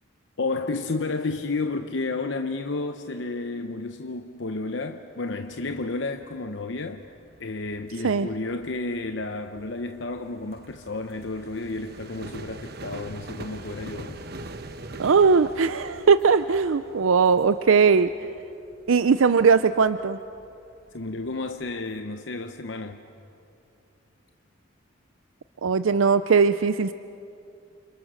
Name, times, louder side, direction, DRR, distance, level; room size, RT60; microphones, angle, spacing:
voice 1, 0.4-7.0 7.4-14.2 20.9-23.0, left 3 dB, 65° left, 0.8 m, -31 dB
sound 1, 5.5-22.0, right 2 dB, 50° right, 1.1 m, -44 dB
voice 2, 15.0-18.1 18.9-20.2 25.6-26.9, right 5 dB, 85° right, 0.5 m, -19 dB
29.5 x 27.5 x 6.3 m
head